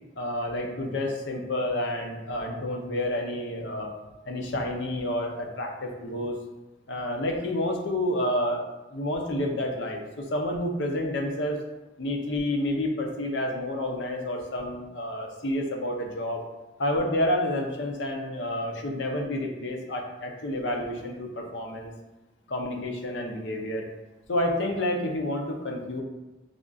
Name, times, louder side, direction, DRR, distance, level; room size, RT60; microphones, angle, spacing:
voice 1, 0.2-3.9 4.3-6.4 6.9-8.6 8.9-11.6 12.0-16.4 16.8-21.9 22.5-23.9 24.3-26.0, left 1 dB, 75° left, 1 dB, 0.6 m, -29 dB
4.9 x 2.5 x 2.4 m, 1.0 s
head